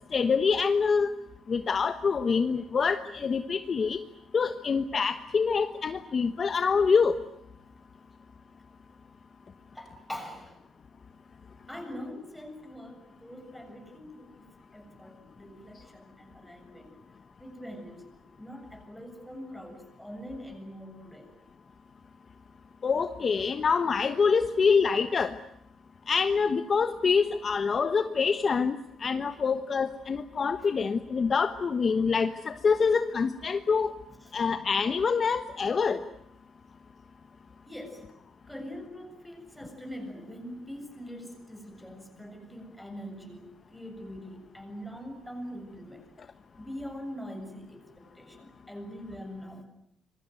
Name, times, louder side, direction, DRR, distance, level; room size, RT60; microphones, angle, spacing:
voice 1, 0.1-1.1 1.5-4.0 4.3-7.2 22.8-25.3 26.1-33.9 34.3-36.0, left 5 dB, 35° left, 9 dB, 1.2 m, -26 dB
voice 2, 9.7-10.6 11.7-14.4 14.7-17.0 17.4-18.1 18.4-21.3 30.6-30.7 34.2-34.3 37.7-38.1 38.5-46.1 46.6-49.6, equal, ahead, 4 dB, 7.3 m, -43 dB
26.5 x 23.0 x 9.3 m, 0.76 s
cardioid pair, 135°, 0 cm